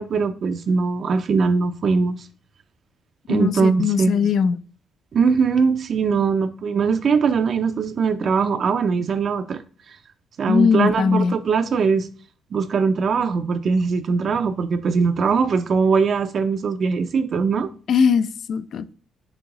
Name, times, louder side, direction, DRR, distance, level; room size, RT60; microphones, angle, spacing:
voice 1, 0.0-2.2 3.3-4.2 5.1-9.6 10.4-12.1 12.5-17.7, right 5 dB, 55° right, 0.4 m, -21 dB
voice 2, 3.3-4.6 10.5-11.3 17.9-18.9, left 6 dB, 65° left, 0.3 m, -20 dB
6.1 x 2.8 x 2.9 m
cardioid pair, 90°, 0 cm